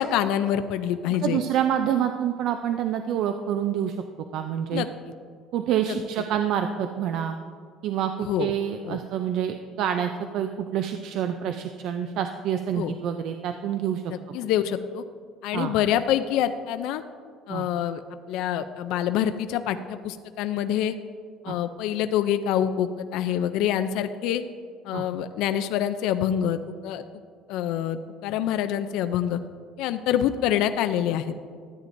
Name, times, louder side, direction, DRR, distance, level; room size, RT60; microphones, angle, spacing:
voice 1, 0.0-1.4 4.7-4.9 5.9-6.0 8.2-8.5 8.9-9.0 12.7-12.9 14.1-15.0 15.4-17.0 17.5-18.0 18.3-20.9 21.4-24.4 24.8-27.0 27.5-29.4 29.8-31.3, left 10 dB, 70° left, 9 dB, 0.4 m, -26 dB
voice 2, 1.1-4.0 4.3-4.8 5.5-7.4 7.8-14.1 15.5-15.7 17.5-17.7 21.5-21.6 24.9-25.0, right 9 dB, 55° right, 7 dB, 0.4 m, -27 dB
13.5 x 9.0 x 2.6 m, 2.1 s
cardioid pair, 160°, 0 cm